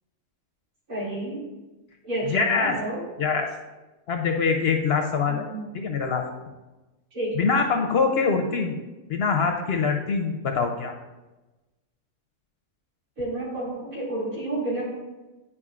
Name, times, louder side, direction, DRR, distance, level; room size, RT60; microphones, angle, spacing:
voice 1, 0.9-1.4 2.0-3.0 5.3-5.6 7.1-7.5 13.2-14.8, right 1 dB, 85° right, -7 dB, 3.0 m, -30 dB
voice 2, 2.3-2.8 3.2-3.5 4.1-5.4 5.7-6.2 7.3-8.8 9.1-10.9, left 5 dB, 60° left, 4 dB, 0.7 m, -24 dB
9.7 x 4.9 x 2.4 m, 1.1 s
omnidirectional pair, 1.4 m